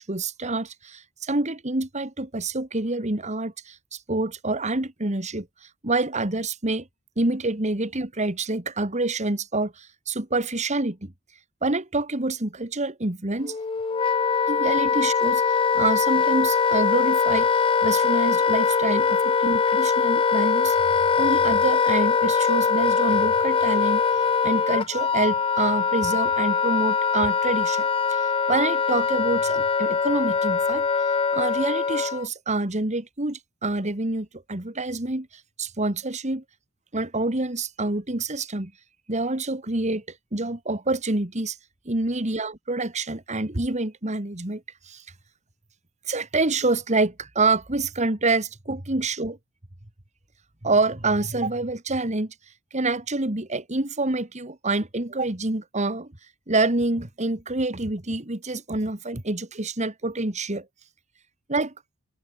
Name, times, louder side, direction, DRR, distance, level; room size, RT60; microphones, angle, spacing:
voice 1, 0.0-5.5 5.8-6.9 7.2-11.1 11.6-13.6 14.5-17.5 17.8-20.8 21.2-30.9 31.3-35.3 35.6-36.4 36.9-38.7 39.1-40.0 40.3-41.6 41.9-45.0 46.1-49.4 50.6-52.3 52.7-56.1 56.5-60.7 61.5-61.7, right 2 dB, 35° right, 2.2 m, -27 dB
Wind instrument woodwind instrument, 13.4-32.3, left 5 dB, 25° left, 0.4 m, -22 dB
open air
head